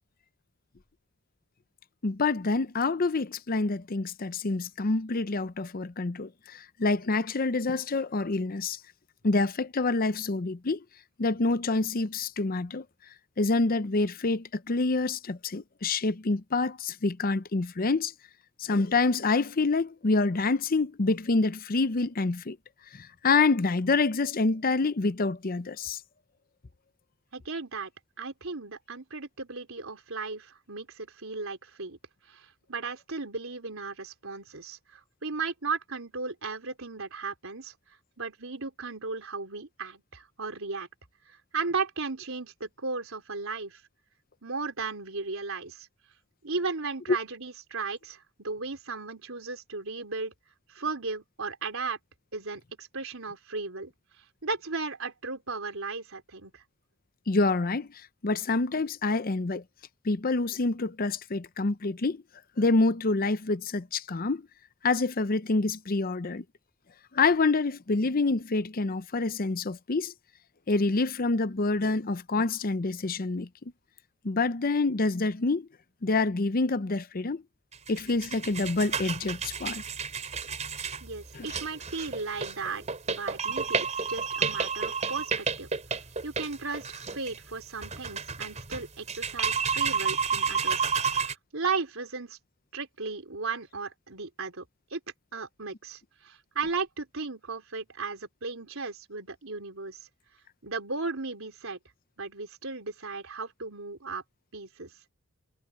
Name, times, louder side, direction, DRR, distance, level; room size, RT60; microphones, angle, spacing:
voice 1, 2.0-8.8 9.2-10.8 11.2-12.8 13.4-18.1 18.6-22.6 22.9-26.0 47.1-47.2 57.3-57.9 58.2-59.6 60.0-62.2 62.6-64.5 64.8-66.4 67.1-70.1 70.7-73.5 74.2-75.7 76.0-77.4 77.9-79.8 81.3-81.5, left 3 dB, 45° left, 0.7 m, -27 dB
voice 2, 27.3-27.9 28.2-32.0 32.3-37.7 38.2-40.9 41.3-43.8 44.4-45.9 46.4-50.3 50.7-52.0 52.3-53.9 54.4-56.6 81.0-85.7 86.2-92.4 92.7-94.7 94.9-95.0 95.3-100.0 100.6-101.8 102.2-104.2 104.5-104.9, right 4 dB, 80° right, 3.7 m, -35 dB
sound 1, 77.7-91.3, right 5 dB, 35° right, 3.8 m, -31 dB
head